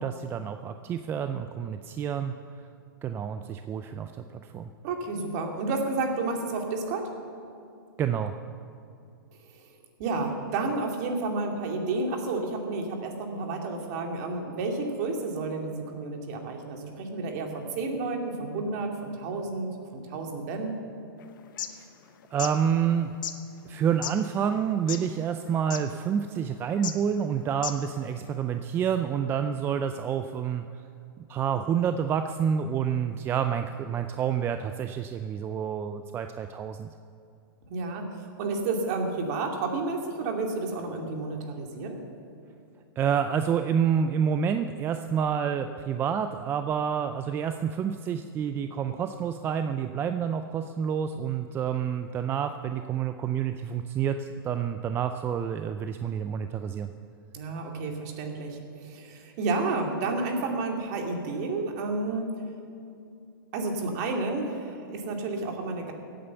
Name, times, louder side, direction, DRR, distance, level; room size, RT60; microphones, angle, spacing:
voice 1, 0.0-2.3 3.0-4.7 8.0-8.3 21.7-21.9 22.3-23.1 23.7-30.6 31.3-36.9 43.0-56.9, right 8 dB, 20° right, 8 dB, 0.4 m, -28 dB
voice 2, 4.8-7.1 10.0-20.8 37.7-38.1 38.4-42.0 57.3-62.3 63.5-65.9, right 3 dB, 45° right, 2 dB, 2.4 m, -31 dB
sound 1, 21.4-21.7 22.2-22.5 23.2-23.3 24.0-24.1 24.7-25.1 25.4-25.5 25.7-25.8 26.8-27.0 27.5-27.9, left 11 dB, 60° left, 1.0 m, -33 dB
16.0 x 8.9 x 7.0 m, 2.6 s
hypercardioid pair, 130°, 12 cm